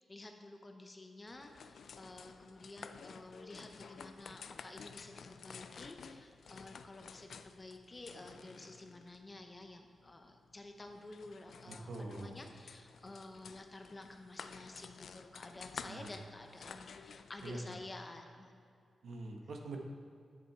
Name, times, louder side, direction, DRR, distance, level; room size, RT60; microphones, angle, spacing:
voice 1, 0.0-18.5, left 2 dB, 20° left, 4 dB, 0.7 m, -51 dB
sound 1, 1.3-17.8, left 6 dB, 65° left, 0.3 m, -52 dB
voice 2, 11.6-12.4 15.9-16.1 17.4-17.6 19.0-19.8, right 2 dB, 70° right, 2 dB, 1.1 m, -44 dB
10.0 x 7.1 x 4.4 m, 2.4 s
wide cardioid pair, 160°, 0 cm